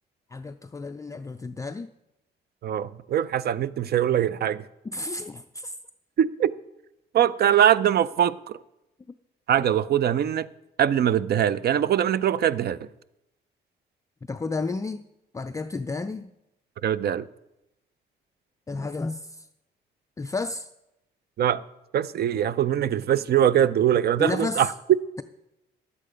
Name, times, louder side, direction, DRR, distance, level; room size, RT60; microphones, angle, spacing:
voice 1, 0.3-1.9 4.8-5.8 14.3-15.1 15.3-16.3 18.7-19.5 20.2-20.7 24.2-24.7, left 3 dB, 15° left, 0.3 m, -32 dB
voice 2, 2.6-4.6 6.2-6.5 7.1-8.6 9.5-10.5 10.8-12.8 16.8-17.3 21.4-21.6 21.9-24.7, right 10 dB, 55° right, 0.5 m, -22 dB
11.0 x 8.4 x 5.0 m
cardioid pair, 90°, 20 cm